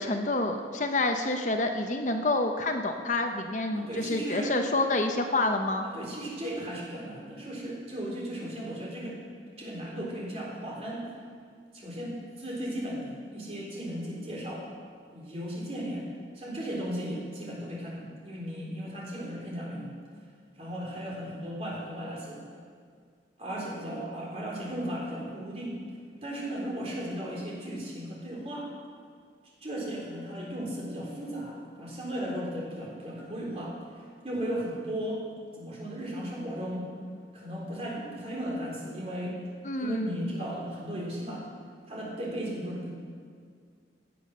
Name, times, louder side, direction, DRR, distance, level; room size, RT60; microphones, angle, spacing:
voice 1, 0.0-5.8 39.6-40.4, left 2 dB, 40° left, 5 dB, 0.8 m, -28 dB
voice 2, 3.7-4.5 5.8-9.2 9.6-11.0 11.7-14.7 15.1-16.1 16.4-19.9 20.6-22.4 23.4-25.7 26.2-28.7 29.6-33.8 34.2-35.2 35.6-36.9 37.3-39.4 39.8-41.5 41.9-42.9, equal, 35° right, -4 dB, 3.7 m, -36 dB
16.5 x 8.4 x 6.5 m, 2.1 s
head